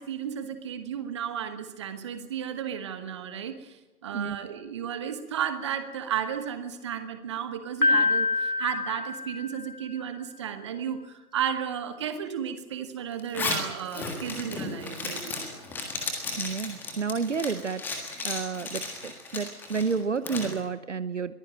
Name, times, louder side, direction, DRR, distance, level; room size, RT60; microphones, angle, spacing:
voice 1, 0.0-15.5, right 8 dB, 20° right, 10 dB, 1.2 m, -33 dB
Piano, 7.8-9.9, left 3 dB, 85° left, 1.1 m, -26 dB
Zipper (clothing), 13.2-20.5, left 3 dB, 5° left, 1.6 m, -34 dB
voice 2, 16.4-17.8 18.2-21.4, right 5 dB, 50° right, 14 dB, 1.0 m, -30 dB
22.0 x 15.0 x 9.2 m, 1.1 s
figure-of-eight pair, 145°, 45 cm